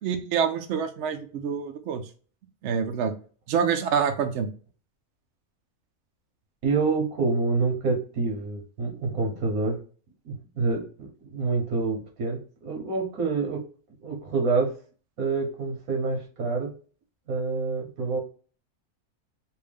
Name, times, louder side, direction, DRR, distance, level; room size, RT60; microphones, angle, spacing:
voice 1, 0.0-2.0 2.6-3.1 3.5-4.5, right 7 dB, 65° right, 6 dB, 0.9 m, -26 dB
voice 2, 6.6-9.8 10.2-13.6 14.0-14.7 15.2-16.7 17.3-18.2, right 4 dB, 90° right, 1 dB, 1.6 m, -27 dB
3.4 x 2.6 x 3.4 m, 0.38 s
omnidirectional pair, 1.5 m